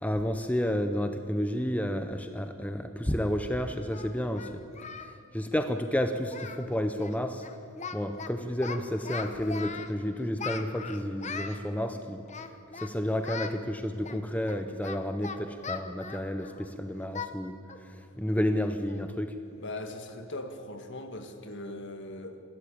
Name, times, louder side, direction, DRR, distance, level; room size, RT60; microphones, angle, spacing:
voice 1, 0.0-4.6 5.3-7.4 7.9-12.2 12.7-17.6 17.8-19.3, equal, 5° left, 7 dB, 0.8 m, -31 dB
Singing, 3.1-3.2 3.9-5.1 5.4-5.6 5.9-6.0 6.3-6.7 6.9-7.2 7.4-8.3 8.6-9.9 10.4-11.6 12.3-12.9 13.2-13.6 14.0-16.7 17.1-17.3 17.7-17.9 18.3-18.4 18.9-19.1, left 5 dB, 35° left, 1.1 m, -39 dB
voice 2, 19.5-22.4, left 2 dB, 55° left, 6 dB, 1.9 m, -40 dB
27.0 x 13.5 x 8.6 m, 2.6 s
head